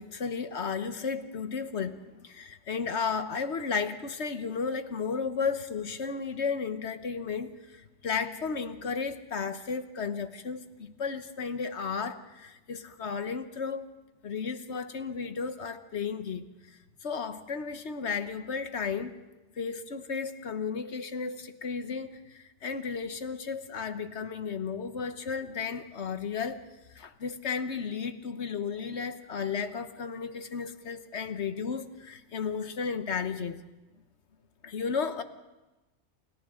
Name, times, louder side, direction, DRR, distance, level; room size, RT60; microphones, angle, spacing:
voice 1, 0.0-13.9 14.2-16.4 17.0-19.1 19.6-26.6 26.9-33.6 34.6-35.2, left 5 dB, 70° left, 10 dB, 1.4 m, -34 dB
29.0 x 28.5 x 3.8 m, 1.1 s
omnidirectional pair, 1.2 m